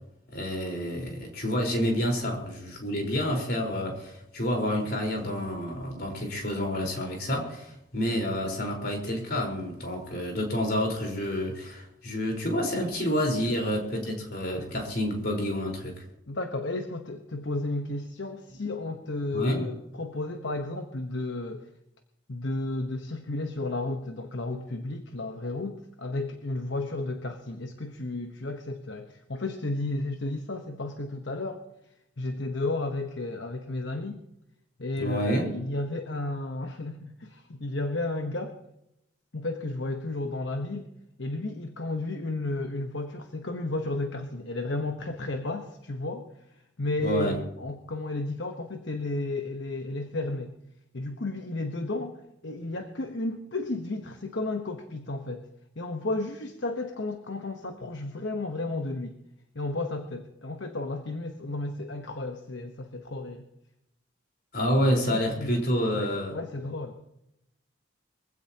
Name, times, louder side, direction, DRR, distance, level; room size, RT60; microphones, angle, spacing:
voice 1, 0.3-16.0 19.3-19.6 35.0-35.5 47.0-47.3 64.5-66.3, equal, 50° left, 1 dB, 4.5 m, -28 dB
voice 2, 13.9-14.2 16.3-21.7 22.3-31.6 32.2-34.2 34.8-38.5 39.3-40.9 41.2-50.5 50.9-55.5 55.7-59.2 59.5-63.5 65.1-65.6 65.9-67.0, left 2 dB, 70° left, 5 dB, 1.1 m, -33 dB
23.5 x 16.0 x 2.9 m, 0.82 s
head